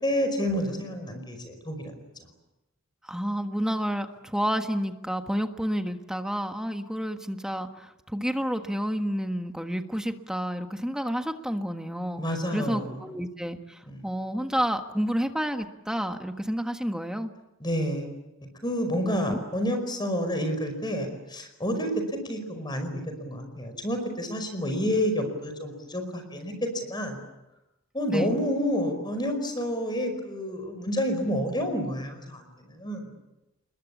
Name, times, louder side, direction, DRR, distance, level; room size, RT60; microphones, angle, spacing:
voice 1, 0.0-1.9 12.2-13.0 13.9-14.0 17.6-18.1 18.6-27.2 27.9-33.1, equal, 20° left, 6 dB, 5.1 m, -29 dB
voice 2, 3.0-12.2 12.5-17.3 19.1-19.4 28.1-28.4, equal, 5° right, 6 dB, 1.4 m, -30 dB
29.5 x 22.0 x 8.4 m, 0.95 s
head